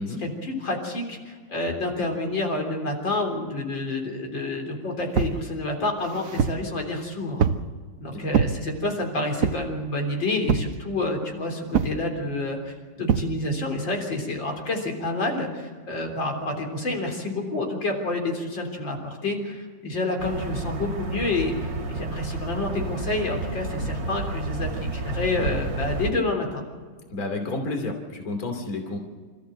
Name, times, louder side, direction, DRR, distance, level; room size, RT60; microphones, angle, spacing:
voice 1, 0.0-7.5 8.0-26.6, left 2 dB, 80° left, 2 dB, 4.4 m, -29 dB
sound 1, 5.1-5.4 6.0-6.7 7.4-7.7 8.3-8.6 9.4-9.7 10.5-10.8 11.7-12.0 13.1-13.3, right 7 dB, 55° right, 1.1 m, -23 dB
sound 2, 20.2-26.1, right 2 dB, 75° right, 3.3 m, -31 dB
voice 2, 27.1-29.0, left 2 dB, 50° left, 4 dB, 3.3 m, -30 dB
28.5 x 14.5 x 7.9 m, 1.5 s
omnidirectional pair, 2.0 m